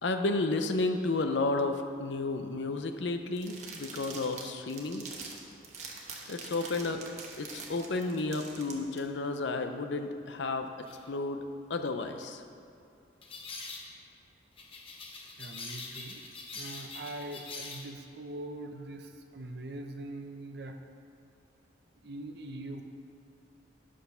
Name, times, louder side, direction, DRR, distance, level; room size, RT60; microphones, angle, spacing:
voice 1, 0.0-5.1 6.3-7.0 7.4-12.4, left 2 dB, 70° left, 6 dB, 0.6 m, -32 dB
sound 1, 3.4-9.0, right 4 dB, 35° right, 1.0 m, -45 dB
sound 2, 10.9-11.0 13.2-13.9 14.6-17.9, left 3 dB, 30° left, 0.8 m, -43 dB
voice 2, 15.4-16.2 16.5-20.8 22.0-22.8, right 1 dB, 55° right, 5 dB, 0.7 m, -42 dB
9.3 x 6.2 x 5.6 m, 2.5 s
head